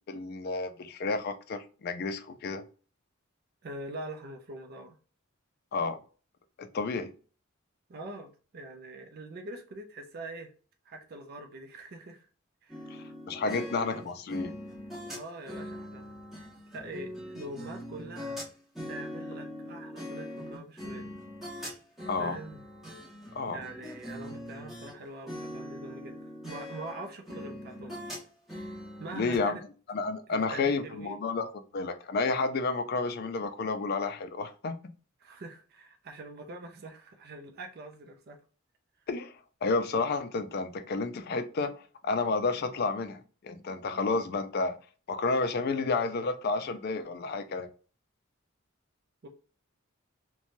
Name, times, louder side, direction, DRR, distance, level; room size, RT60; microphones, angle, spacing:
voice 1, 0.1-2.6 5.7-6.0 6.6-7.1 12.9-14.5 22.1-22.4 23.4-23.6 29.1-29.6 29.9-34.9 39.1-39.3 39.6-41.7 42.0-44.8 45.1-47.7, left 3 dB, 50° left, 9 dB, 0.4 m, -31 dB
voice 2, 3.6-5.0 7.9-10.5 10.9-12.3 12.6-12.9 13.4-13.7 15.1-16.2 16.7-18.4 18.8-21.1 22.2-22.6 23.5-28.0 29.0-29.6 30.3-31.2 35.2-38.4 49.2-49.3, right 2 dB, 50° right, 4 dB, 0.4 m, -44 dB
sound 1, 12.7-24.9 25.3-29.4, left 1 dB, ahead, 1.3 m, -42 dB
3.0 x 2.2 x 2.6 m, 0.38 s
head